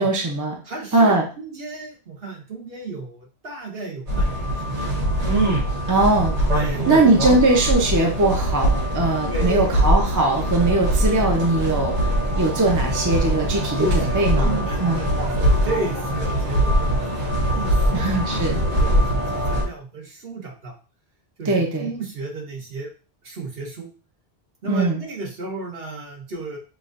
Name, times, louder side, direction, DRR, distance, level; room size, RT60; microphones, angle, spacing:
voice 1, 0.0-0.6 0.9-1.3 5.9-6.3 6.9-11.9 12.4-13.9 14.1-15.0 17.9-18.6 21.5-21.9 24.6-25.0, right 2 dB, 20° right, 1 dB, 0.6 m, -20 dB
voice 2, 0.6-5.2 6.5-7.2 9.3-9.9 13.8-20.7 21.4-22.9 23.2-23.9 24.6-26.6, right 2 dB, 60° right, 0 dB, 1.3 m, -33 dB
sound 1, 4.1-19.6, equal, 90° right, 1.6 m, -22 dB
5.8 x 2.5 x 2.5 m, 0.35 s
omnidirectional pair, 1.1 m